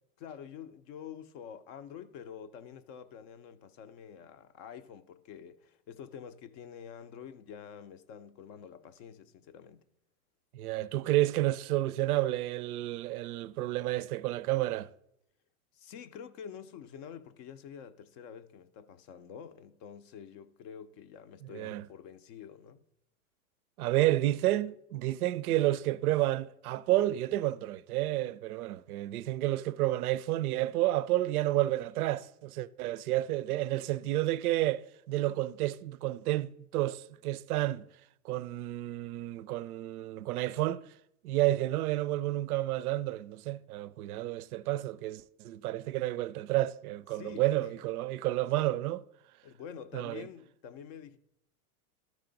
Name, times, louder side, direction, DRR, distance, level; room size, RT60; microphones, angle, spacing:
voice 1, 0.2-9.8 15.7-22.8 47.1-47.7 49.4-51.2, left 8 dB, 35° left, 0.4 m, -47 dB
voice 2, 10.5-14.9 21.5-21.9 23.8-37.9 38.2-40.8 41.2-49.0 49.9-50.3, right 15 dB, 75° right, 0.5 m, -30 dB
13.0 x 4.8 x 3.8 m
hypercardioid pair, 125°, 44 cm